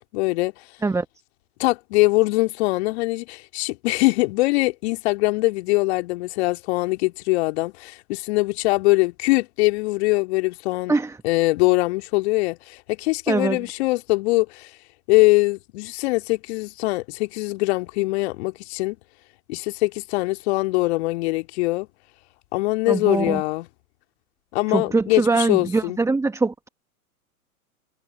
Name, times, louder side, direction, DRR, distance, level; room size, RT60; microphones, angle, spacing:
voice 1, 0.1-0.5 1.6-10.9 11.2-14.7 15.1-19.0 19.5-21.9 22.5-23.7 24.5-26.0, left 22 dB, 45° left, 2.5 m, -22 dB
voice 2, 13.3-13.6 22.9-23.4 24.7-26.7, right 3 dB, 5° right, 1.6 m, -22 dB
figure-of-eight pair, 105°, 44 cm